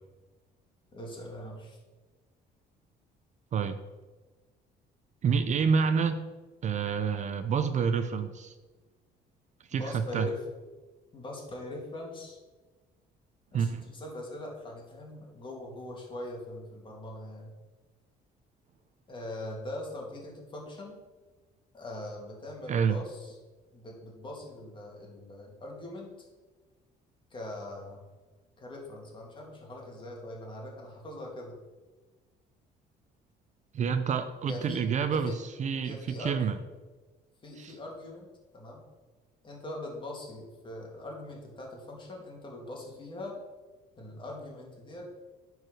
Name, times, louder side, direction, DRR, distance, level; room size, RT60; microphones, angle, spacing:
voice 1, 0.9-1.8 9.7-10.4 11.1-12.4 13.5-17.5 19.1-21.0 21.7-23.3 23.7-26.1 27.3-28.0 28.6-31.6 34.4-34.8 35.1-35.4 35.8-36.6 37.4-38.3 38.5-38.8 39.4-43.4 44.0-45.1, left 1 dB, 30° left, -1 dB, 2.7 m, -41 dB
voice 2, 5.2-6.3 6.6-8.5 9.7-10.3 13.5-13.8 22.7-23.0 33.7-36.6 37.6-37.8, right 6 dB, 45° right, 10 dB, 0.6 m, -28 dB
9.3 x 4.8 x 6.3 m, 1.3 s
cardioid pair, 110°, 17 cm